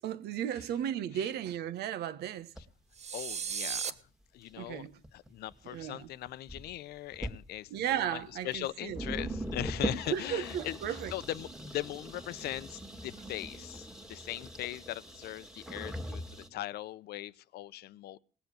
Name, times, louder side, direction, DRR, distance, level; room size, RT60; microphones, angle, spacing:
voice 1, 0.0-2.5 4.6-4.9 5.6-6.1 7.7-9.0 10.1-11.1, right 10 dB, 75° right, 1.3 m, -35 dB
sound 1, 2.5-2.6 3.7-3.8 4.5-4.6 5.0-5.8 6.3-6.7 7.1-7.4 8.2-8.3 8.5-8.6 8.9-16.5, right 1 dB, 5° right, 2.0 m, -40 dB
sound 2, 2.9-3.9, right 7 dB, 40° right, 1.2 m, -35 dB
voice 2, 3.1-4.0 4.3-16.2 16.5-18.2, left 14 dB, 70° left, 0.7 m, -40 dB
19.5 x 7.1 x 9.1 m
cardioid pair, 110°, 17 cm